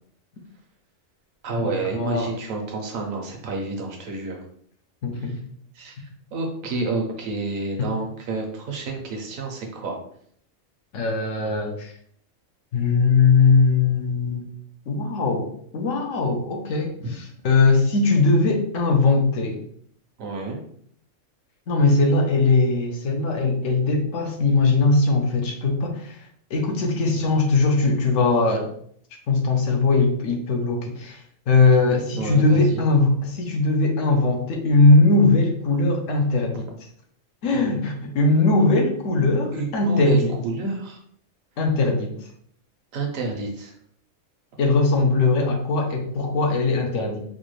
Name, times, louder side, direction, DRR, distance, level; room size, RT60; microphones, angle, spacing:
voice 1, 1.4-4.4 5.1-5.4 5.7-10.0 17.0-17.1 20.2-20.6 32.2-32.9 36.5-36.6 39.5-41.0 42.9-43.8, right 3 dB, 80° right, 1 dB, 1.2 m, -29 dB
voice 2, 5.0-5.3 7.8-7.9 10.9-11.9 12.7-14.4 14.9-16.9 17.4-19.6 21.7-26.2 26.5-28.7 29.3-31.2 31.5-36.6 37.4-40.3 41.6-42.1 44.6-47.2, left 3 dB, 70° left, 3 dB, 1.1 m, -20 dB
4.8 x 2.2 x 3.1 m, 0.63 s
omnidirectional pair, 1.4 m